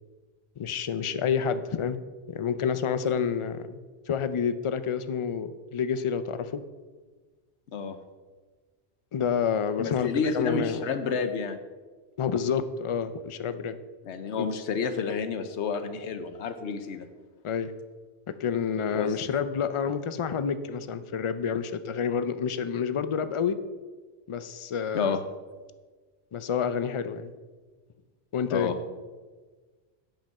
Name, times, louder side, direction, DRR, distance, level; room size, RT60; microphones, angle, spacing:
voice 1, 0.6-2.0 2.3-3.8 4.1-6.6 9.1-10.1 10.3-10.8 12.2-13.8 14.4-14.5 17.4-17.7 18.4-23.6 24.3-25.2 26.3-27.3 28.3-28.7, left 7 dB, 45° left, 11 dB, 0.4 m, -28 dB
voice 2, 9.8-11.6 14.0-17.1 18.9-19.2 24.9-25.2 28.5-28.7, left 5 dB, 90° left, 9 dB, 1.1 m, -30 dB
8.8 x 5.3 x 7.1 m, 1.4 s
omnidirectional pair, 1.1 m